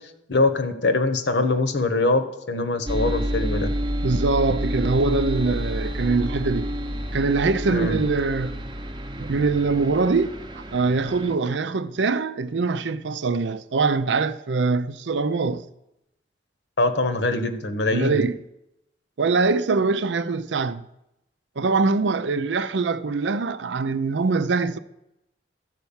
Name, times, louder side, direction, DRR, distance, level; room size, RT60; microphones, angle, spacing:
voice 1, 0.3-3.7 7.7-8.0 16.8-18.2, left 2 dB, 70° left, 1.0 m, -23 dB
sound 1, 2.9-11.3, equal, 25° right, 0.7 m, -29 dB
voice 2, 4.0-6.7 7.1-8.6 9.2-15.6 17.9-18.3 19.2-20.8 21.6-24.8, right 4 dB, 80° right, 0.5 m, -23 dB
12.5 x 4.5 x 7.1 m
head